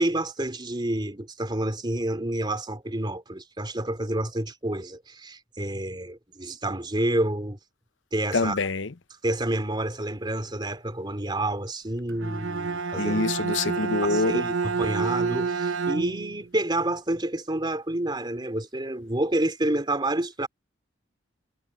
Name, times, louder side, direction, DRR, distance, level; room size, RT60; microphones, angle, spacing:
voice 1, 0.0-7.6 8.1-8.6 9.2-13.2 14.0-20.5, right 1 dB, 25° right, 3.3 m, -29 dB
voice 2, 8.3-8.9 13.0-14.4, left 3 dB, 75° left, 0.8 m, -26 dB
Bowed string instrument, 12.1-16.4, right 5 dB, 85° right, 0.8 m, -28 dB
head